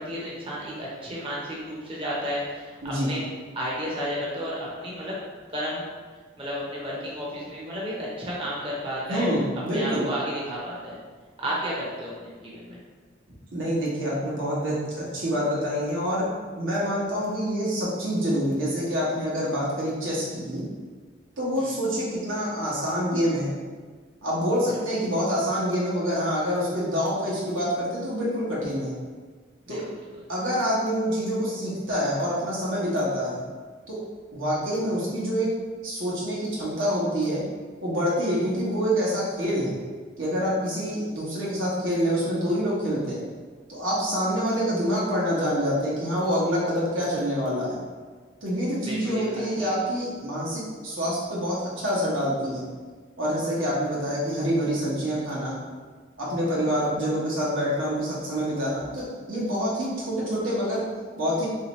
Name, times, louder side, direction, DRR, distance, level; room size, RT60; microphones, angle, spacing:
voice 1, 0.0-3.2 3.5-5.1 5.5-5.9 6.4-9.3 9.7-11.0 11.4-12.8 21.6-21.7 24.7-24.9 29.7-29.8 48.8-49.7, equal, 25° right, -6 dB, 0.5 m, -32 dB
voice 2, 9.1-10.1 13.5-16.3 16.6-20.6 21.4-23.5 24.2-28.9 29.7-29.8 30.3-33.4 33.9-34.0 34.3-35.5 35.8-37.4 37.8-39.7 40.2-43.2 43.7-47.8 48.4-52.7 53.2-55.6 56.2-60.8 61.2-61.5, equal, 85° right, -6 dB, 1.1 m, -26 dB
3.1 x 2.8 x 3.0 m, 1.5 s
head